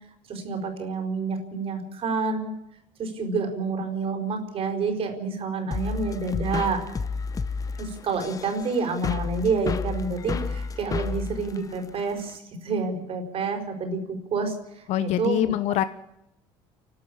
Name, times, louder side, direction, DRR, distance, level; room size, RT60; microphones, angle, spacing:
voice 1, 0.3-2.5 3.0-6.8 7.8-15.5, right 4 dB, 50° right, 5 dB, 4.5 m, -28 dB
sound 1, 5.7-12.4, left 4 dB, 30° left, 0.9 m, -31 dB
voice 2, 14.9-15.8, left 13 dB, 65° left, 12 dB, 0.9 m, -24 dB
28.5 x 12.5 x 8.6 m, 0.87 s
cardioid pair, 105°, 12 cm